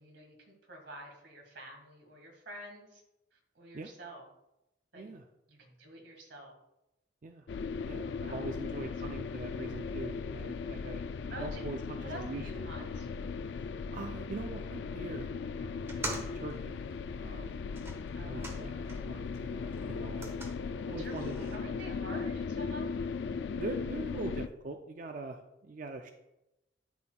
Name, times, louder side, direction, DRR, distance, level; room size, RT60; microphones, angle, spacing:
voice 1, 0.0-3.0 3.3-4.3 4.9-5.2 5.5-6.5 8.2-8.9 11.3-13.1 18.1-20.0 21.0-22.9, equal, 90° right, 1 dB, 1.8 m, -48 dB
sound 1, 7.5-24.5, left 5 dB, 75° left, 0.3 m, -38 dB
voice 2, 7.9-11.0 11.4-12.7 13.4-15.3 15.6-16.8 17.2-17.6 18.0-18.7 19.1-20.3 20.7-21.3 23.6-26.1, right 3 dB, 45° right, 5 dB, 0.4 m, -42 dB
sound 2, 15.8-19.2 19.5-21.6, right 1 dB, 15° right, 0.9 m, -45 dB
12.0 x 4.2 x 2.3 m, 0.91 s
head